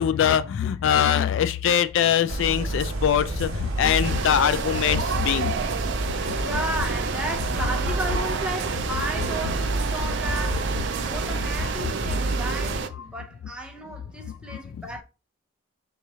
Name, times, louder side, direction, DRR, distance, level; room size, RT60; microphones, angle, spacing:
voice 1, 0.0-5.5 14.5-14.6, left 9 dB, 65° left, 0.3 m, -22 dB
sound 1, 2.3-12.8, right 2 dB, 80° right, 0.9 m, -29 dB
sound 2, 4.0-12.9, right 5 dB, 60° right, 0.5 m, -30 dB
voice 2, 6.4-15.0, right 1 dB, 5° right, 0.6 m, -34 dB
3.5 x 3.0 x 4.2 m
head